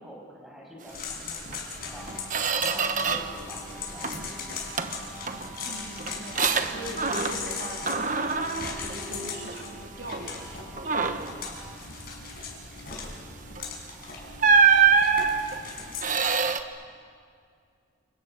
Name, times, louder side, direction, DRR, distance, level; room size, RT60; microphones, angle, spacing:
voice 1, 0.0-2.2 2.5-4.5, equal, ahead, -3 dB, 6.8 m, -46 dB
sound 1, 0.9-16.2, left 4 dB, 50° left, 6.7 m, -39 dB
Squeak, 1.5-1.6 2.0-3.4 3.8-4.3 4.8-7.6 7.9-9.7 10.1-10.3 10.8-11.4 13.5-13.7 14.4-16.6, right 5 dB, 40° right, 1.2 m, -25 dB
sound 2, 1.8-11.8, right 1 dB, 15° right, 3.7 m, -47 dB
voice 2, 5.7-7.8 8.8-11.7, right 1 dB, 65° right, 0 dB, 3.1 m, -42 dB
29.0 x 29.0 x 6.8 m, 2.2 s
head